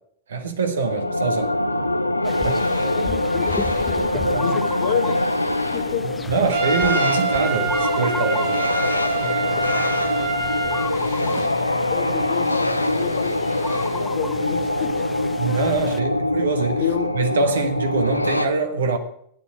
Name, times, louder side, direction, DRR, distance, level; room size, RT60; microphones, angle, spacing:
voice 1, 0.3-1.5 2.4-2.7 4.1-4.6 6.3-8.8 15.4-16.8 17.1-19.0, right 4 dB, 65° right, 1.5 m, -24 dB
sound 1, 0.8-18.5, left 1 dB, 85° left, 0.6 m, -24 dB
sound 2, 2.2-16.0, left 4 dB, 15° left, 0.6 m, -35 dB
voice 2, 3.0-3.5 4.4-5.2 5.7-6.2 11.9-15.1 16.8-17.1, left 10 dB, 55° left, 1.2 m, -29 dB
Trumpet, 6.5-10.9, right 5 dB, 50° right, 1.7 m, -26 dB
13.0 x 9.4 x 6.1 m
figure-of-eight pair, 90°, 0 cm